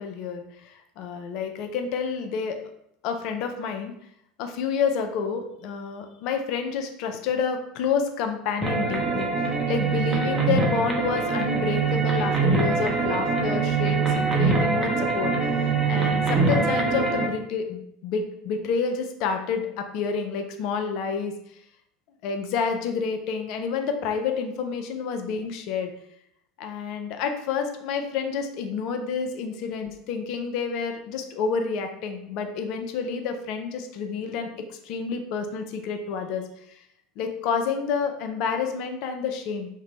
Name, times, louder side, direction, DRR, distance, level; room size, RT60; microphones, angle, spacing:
voice 1, 0.0-2.6 3.0-3.9 4.4-9.3 9.7-21.3 22.2-25.9 26.6-36.4 36.7-36.8 37.2-39.7, left 6 dB, 60° left, 6 dB, 0.4 m, -29 dB
sound 1, 8.6-17.3, right 4 dB, 20° right, 0.6 m, -23 dB
2.5 x 2.1 x 2.9 m, 0.74 s
hypercardioid pair, 80°, 0 cm